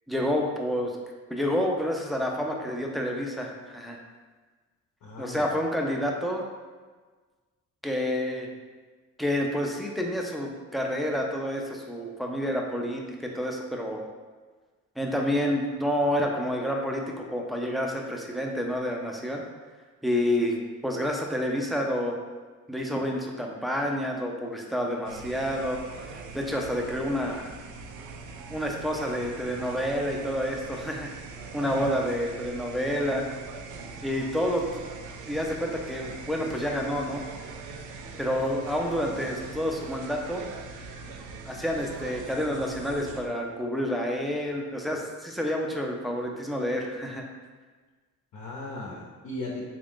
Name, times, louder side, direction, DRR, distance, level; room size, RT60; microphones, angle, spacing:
voice 1, 0.1-1.0 1.3-4.0 5.2-6.4 7.8-8.5 9.2-14.0 15.0-19.4 20.0-20.6 20.8-22.2 22.7-25.8 26.1-27.5 28.5-31.1 31.5-33.3 34.0-34.8 35.2-37.2 38.2-40.5 41.5-47.2, equal, ahead, 0 dB, 0.5 m, -29 dB
voice 2, 5.0-5.6 31.6-31.9 48.3-49.7, left 2 dB, 70° left, -3 dB, 0.8 m, -37 dB
sound 1, 25.0-43.3, right 4 dB, 80° right, 0.5 m, -42 dB
3.6 x 2.5 x 3.5 m, 1.4 s
cardioid pair, 90°, 30 cm